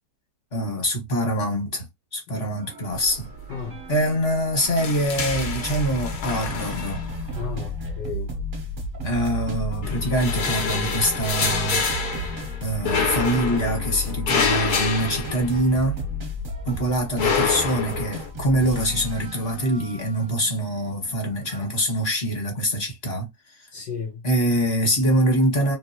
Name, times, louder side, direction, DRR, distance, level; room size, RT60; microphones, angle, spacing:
voice 1, 0.5-1.8 2.1-3.3 3.9-7.0 9.0-16.0 16.6-23.7 24.2-25.8, right 1 dB, 35° left, 1.7 m, -24 dB
sound 1, 2.6-21.7, left 1 dB, 40° right, 0.8 m, -33 dB
sound 2, 3.0-3.5 3.8-4.0 4.3-7.4 8.3-9.3 9.7-16.0 16.4-18.3, left 5 dB, 65° left, 1.4 m, -27 dB
voice 2, 7.3-8.3 10.7-11.0 23.7-24.2, left 6 dB, 80° left, 1.5 m, -34 dB
3.2 x 2.8 x 2.8 m
omnidirectional pair, 1.9 m